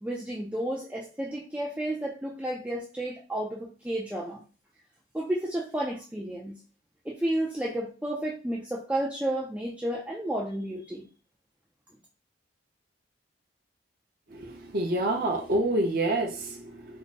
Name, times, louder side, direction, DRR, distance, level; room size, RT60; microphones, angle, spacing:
voice 1, 0.0-4.4 5.1-6.6 7.1-11.1, right 1 dB, 5° right, -3 dB, 0.3 m, -32 dB
voice 2, 14.3-17.0, right 1 dB, 50° right, 1 dB, 0.6 m, -28 dB
3.4 x 2.0 x 4.0 m, 0.35 s
head